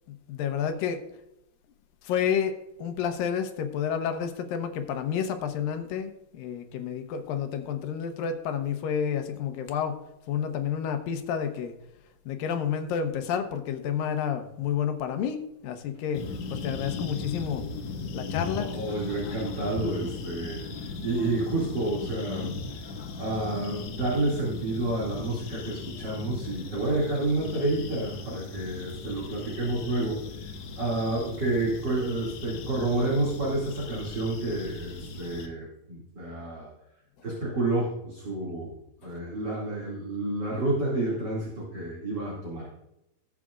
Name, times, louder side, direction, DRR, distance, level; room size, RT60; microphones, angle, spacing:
voice 1, 0.1-1.0 2.0-11.8 12.3-17.6 18.1-18.8, left 8 dB, 90° left, 7 dB, 2.7 m, -30 dB
sound 1, 16.1-35.5, left 4 dB, 65° left, 2.4 m, -38 dB
voice 2, 18.5-22.8 23.2-30.5 30.8-36.7 37.2-38.8 39.0-42.7, right 2 dB, 35° right, -6 dB, 2.6 m, -30 dB
19.0 x 7.5 x 2.5 m, 0.88 s
omnidirectional pair, 3.9 m